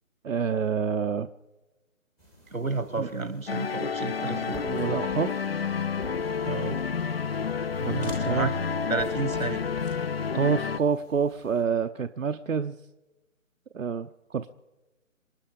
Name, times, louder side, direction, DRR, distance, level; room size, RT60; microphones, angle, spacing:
voice 1, 0.2-1.3 3.0-3.3 4.2-5.4 7.8-8.5 10.3-12.8 13.7-14.5, right 6 dB, 70° right, 8 dB, 0.7 m, -28 dB
sound 1, 2.2-11.6, equal, 5° left, 0.9 m, -50 dB
voice 2, 2.5-4.8 6.4-6.8 8.2-8.5 8.9-9.6, right 3 dB, 85° right, 14 dB, 1.5 m, -31 dB
sound 2, 3.5-10.8, left 6 dB, 50° left, 0.6 m, -29 dB
27.5 x 9.9 x 5.1 m, 1.1 s
figure-of-eight pair, 150°, 40 cm